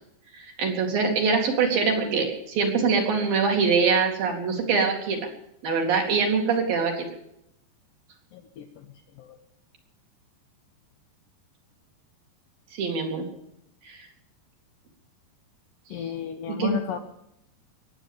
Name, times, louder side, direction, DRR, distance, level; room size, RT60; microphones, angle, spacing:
voice 1, 0.4-5.2 5.6-7.1 12.7-13.3 13.9-14.0 16.5-16.7, right 5 dB, 60° right, 1 dB, 4.0 m, -24 dB
voice 2, 8.3-8.6 9.2-9.4 15.9-17.0, left 9 dB, 75° left, 4 dB, 2.1 m, -33 dB
21.5 x 8.9 x 7.2 m, 0.78 s
omnidirectional pair, 4.9 m